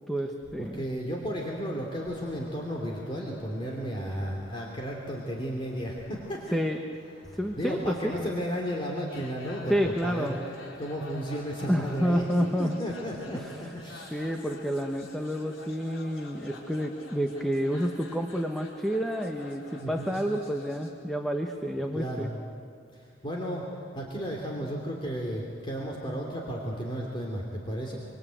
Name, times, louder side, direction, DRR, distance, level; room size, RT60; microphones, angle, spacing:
voice 1, 0.1-0.9 6.5-6.8 7.3-8.2 9.7-10.4 11.7-12.8 13.3-13.7 14.1-22.3, equal, ahead, 3 dB, 1.1 m, -29 dB
voice 2, 0.6-6.6 7.2-10.4 10.8-14.3 19.8-20.2 21.9-22.4 22.9-23.7 23.9-28.0, equal, 25° left, -1 dB, 3.0 m, -34 dB
sound 1, 1.6-20.9, left 2 dB, 85° left, 4.5 m, -49 dB
25.5 x 25.0 x 9.2 m, 2.4 s
head